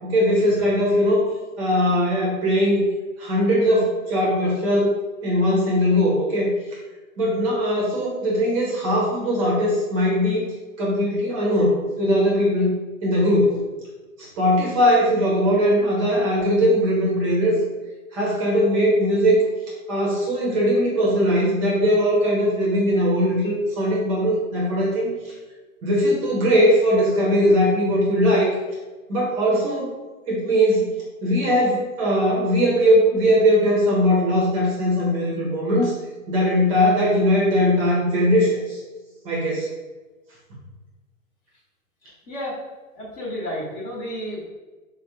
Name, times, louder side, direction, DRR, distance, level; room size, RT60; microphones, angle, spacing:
voice 1, 0.0-1.3 1.6-2.8 3.2-4.9 5.2-6.8 7.2-10.5 10.8-12.7 13.0-13.6 14.2-17.6 18.1-19.4 19.9-25.3 25.8-28.5 29.1-29.9 30.3-30.9 31.2-35.9 36.3-38.8 39.2-39.7, equal, 25° right, -4 dB, 0.7 m, -20 dB
voice 2, 42.0-42.6 43.0-44.4, equal, 25° left, -5 dB, 0.9 m, -32 dB
4.3 x 2.2 x 2.7 m, 1.3 s
figure-of-eight pair, 115°, 42 cm